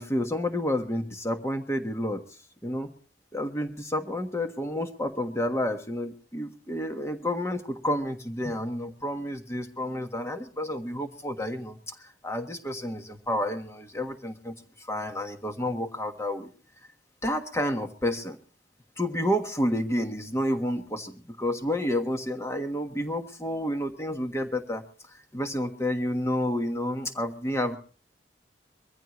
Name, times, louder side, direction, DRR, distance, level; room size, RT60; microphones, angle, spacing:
voice 1, 0.0-2.2 2.6-2.9 3.3-11.8 12.2-14.5 14.9-16.5 17.2-18.4 19.0-24.8 25.3-27.8, left 1 dB, 15° left, 6 dB, 1.4 m, -30 dB
23.0 x 14.5 x 3.1 m, 0.39 s
head